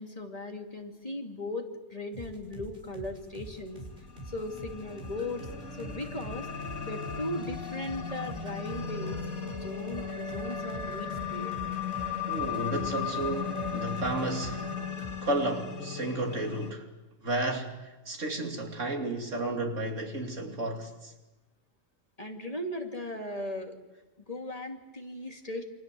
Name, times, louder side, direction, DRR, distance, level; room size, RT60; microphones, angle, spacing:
voice 1, 0.0-3.8 4.2-5.5 5.8-6.5 6.8-9.2 9.5-11.5 22.2-23.8 24.3-25.6, left 1 dB, 30° left, 2.8 m, -37 dB
sound 1, 2.1-14.7 15.0-15.2, right 1 dB, 45° right, 6.1 m, -45 dB
sound 2, 3.6-16.7, left 6 dB, 85° left, 2.5 m, -36 dB
voice 2, 12.3-14.6 15.2-16.9 17.2-21.1, right 2 dB, 80° right, 3.3 m, -32 dB
29.0 x 25.0 x 7.8 m
omnidirectional pair, 1.3 m